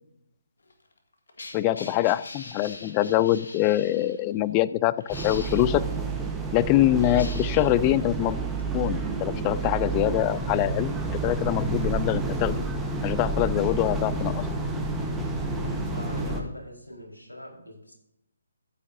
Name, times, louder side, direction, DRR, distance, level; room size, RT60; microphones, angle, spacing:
sound 1, 0.6-4.2 5.0-5.8 6.8-7.8 8.6-8.7, left 3 dB, 70° left, 1.9 m, -43 dB
voice 1, 1.5-4.9 5.2-5.8 6.5-8.4 8.7-12.6 13.0-14.5, left 14 dB, 25° left, 17 dB, 0.4 m, -24 dB
sound 2, 5.1-16.4, right 3 dB, 5° right, 1.2 m, -29 dB
voice 2, 15.5-17.9, left 1 dB, 90° left, -2 dB, 4.3 m, -43 dB
13.5 x 9.1 x 2.7 m, 0.81 s
figure-of-eight pair, 145°, 0 cm